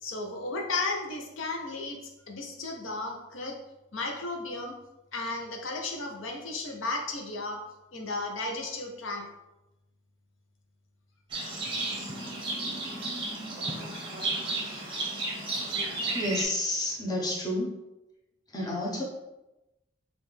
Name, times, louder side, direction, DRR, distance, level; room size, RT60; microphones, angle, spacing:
voice 1, 0.0-2.0 2.3-3.6 3.9-4.8 5.1-7.6 7.9-9.3, left 3 dB, 80° left, 1 dB, 0.7 m, -34 dB
Livestock farm animals working animals, 11.3-16.4, right 2 dB, 25° right, 0.7 m, -33 dB
voice 2, 16.1-17.7 18.5-19.0, left 1 dB, 20° left, -3 dB, 0.7 m, -30 dB
5.4 x 2.5 x 3.3 m, 0.97 s
head